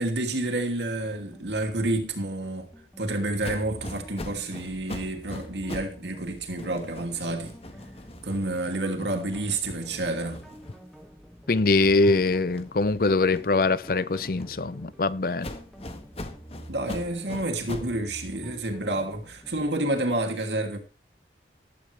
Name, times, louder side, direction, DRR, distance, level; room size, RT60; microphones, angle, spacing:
voice 1, 0.0-2.7 3.0-7.6 8.2-10.4 16.7-20.8, right 2 dB, 75° right, 2.8 m, -29 dB
sound 1, 0.9-20.0, equal, ahead, 2.0 m, -48 dB
sound 2, 3.4-6.0 6.3-11.1 11.5-14.8 15.4-18.0, left 1 dB, 35° left, 1.5 m, -42 dB
voice 2, 11.5-15.5, left 3 dB, 55° left, 0.6 m, -23 dB
15.0 x 12.0 x 3.4 m
head